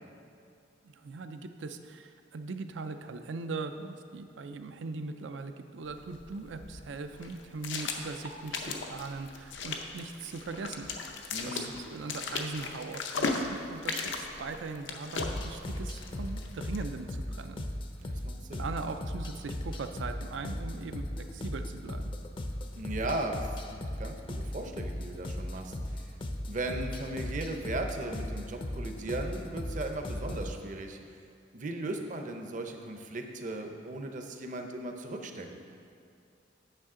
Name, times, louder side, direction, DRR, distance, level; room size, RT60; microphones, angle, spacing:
voice 1, 0.8-10.9 11.4-17.6 18.6-21.0 21.3-22.1, right 3 dB, 80° right, 8 dB, 0.4 m, -40 dB
sound 1, 5.8-16.9, left 4 dB, 90° left, 0.7 m, -38 dB
voice 2, 11.3-11.7 18.0-18.7 22.7-26.1 26.5-31.0 31.5-35.6, right 2 dB, 45° right, 4 dB, 0.6 m, -37 dB
sound 2, 15.2-30.5, left 1 dB, 30° left, 0.5 m, -37 dB
9.0 x 6.6 x 3.7 m, 2.5 s
head